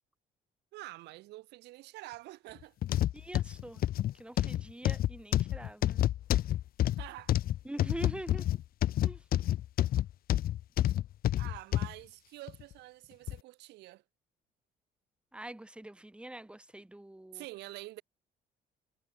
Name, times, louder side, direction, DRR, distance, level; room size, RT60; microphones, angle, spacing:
voice 1, 0.7-2.7 7.0-7.3 11.4-14.0 17.3-18.0, right 18 dB, 85° right, 7.5 m, -47 dB
sound 1, 2.8-11.9 12.5-12.6 13.3-13.4, left 13 dB, 60° left, 1.1 m, -29 dB
voice 2, 3.1-3.8 4.1-6.0 7.6-8.5 9.0-9.2 15.3-17.4, right 1 dB, 5° right, 3.9 m, -44 dB
cardioid pair, 110°, 17 cm